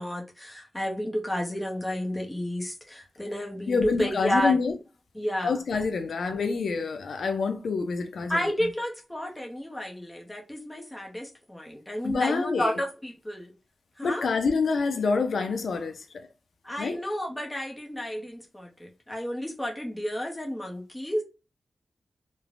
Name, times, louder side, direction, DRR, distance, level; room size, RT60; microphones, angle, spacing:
voice 1, 0.0-4.6 5.1-5.6 8.3-13.5 14.0-14.3 16.6-21.2, equal, 10° left, 0.6 m, -31 dB
voice 2, 3.7-4.8 5.4-8.4 12.0-12.8 14.0-16.3 16.8-17.0, left 4 dB, 75° left, 0.4 m, -27 dB
3.1 x 2.0 x 2.4 m
wide cardioid pair, 155°, 0 cm